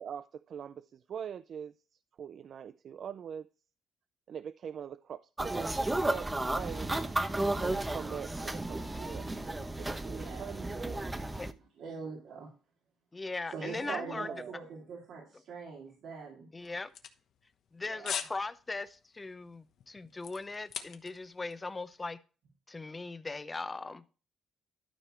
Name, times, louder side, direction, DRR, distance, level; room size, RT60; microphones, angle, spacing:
voice 1, 0.0-1.7 2.2-3.5 4.3-7.0 7.6-11.0 13.8-14.6, right 8 dB, 60° right, 14 dB, 0.3 m, -43 dB
sound 1, 5.4-11.5, right 2 dB, 15° right, 0.8 m, -33 dB
voice 2, 10.1-10.5 11.8-12.5 13.5-16.5 17.9-18.2, right 5 dB, 75° right, -3 dB, 2.6 m, -43 dB
voice 3, 13.1-14.3 16.5-16.9 17.7-22.2 22.7-24.1, left 3 dB, 25° left, 13 dB, 0.8 m, -39 dB
sound 2, 16.6-17.7 18.0-18.4 18.7-19.0 19.5-21.3 21.5-21.6, left 8 dB, 70° left, 1.1 m, -39 dB
12.5 x 4.8 x 4.4 m, 0.35 s
cardioid pair, 90°, 0 cm